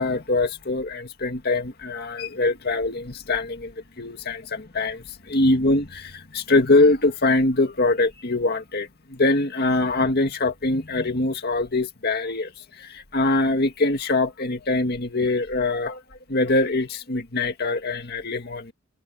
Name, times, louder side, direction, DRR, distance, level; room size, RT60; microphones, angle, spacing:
voice 1, 0.0-3.7 4.0-5.0 5.3-8.9 9.2-12.5 13.1-16.0 16.3-18.7, left 2 dB, 50° left, 2.1 m, -23 dB
head